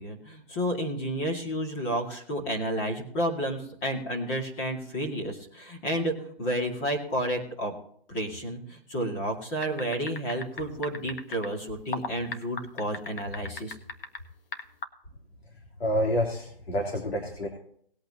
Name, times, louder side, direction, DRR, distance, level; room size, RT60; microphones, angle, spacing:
voice 1, 0.0-7.7 8.1-13.8, equal, 15° left, 0 dB, 2.1 m, -31 dB
sound 1, 9.6-11.5 11.9-14.2 14.5-14.8, left 3 dB, 65° left, 1.8 m, -35 dB
voice 2, 15.8-17.5, equal, 85° left, 0 dB, 3.3 m, -28 dB
19.5 x 8.7 x 2.9 m, 0.64 s
hypercardioid pair, 170°, 30 cm